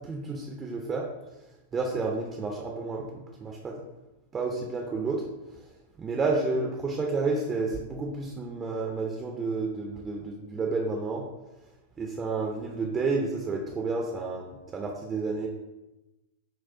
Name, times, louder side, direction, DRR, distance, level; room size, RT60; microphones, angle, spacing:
voice 1, 0.0-1.1 1.7-3.8 4.3-5.2 6.0-11.2 12.0-15.5, right 3 dB, 20° right, 0 dB, 0.5 m, -30 dB
4.8 x 2.0 x 3.7 m, 1.0 s
hypercardioid pair, 100°, 0 cm